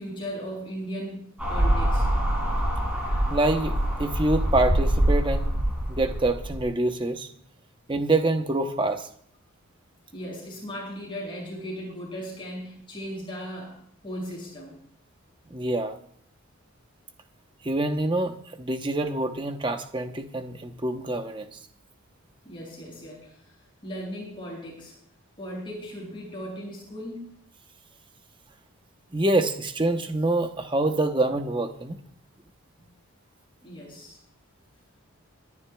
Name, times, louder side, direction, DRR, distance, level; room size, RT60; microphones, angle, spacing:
voice 1, 0.0-2.1 10.1-14.8 22.4-23.4 23.8-25.0 25.4-27.4 33.6-34.2, equal, 25° left, -3 dB, 5.9 m, -37 dB
sound 1, 1.4-6.6, right 1 dB, 5° right, 5.8 m, -25 dB
voice 2, 3.3-3.7 4.0-5.5 5.9-7.3 7.9-9.1 15.5-16.0 17.6-21.6 29.1-32.0, right 2 dB, 20° right, 6 dB, 0.9 m, -26 dB
28.5 x 10.5 x 2.3 m, 0.64 s
head